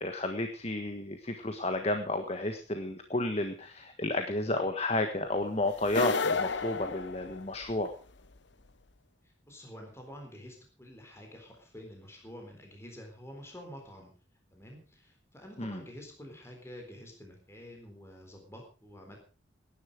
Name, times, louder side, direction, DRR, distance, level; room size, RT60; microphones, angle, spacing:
voice 1, 0.0-7.9 15.6-15.8, left 2 dB, 35° left, 6 dB, 1.5 m, -32 dB
sound 1, 5.8-7.9, left 4 dB, 70° left, 1.1 m, -31 dB
voice 2, 9.5-14.1 14.5-19.2, equal, 15° left, 2 dB, 4.0 m, -48 dB
18.0 x 11.0 x 5.0 m, 0.35 s
head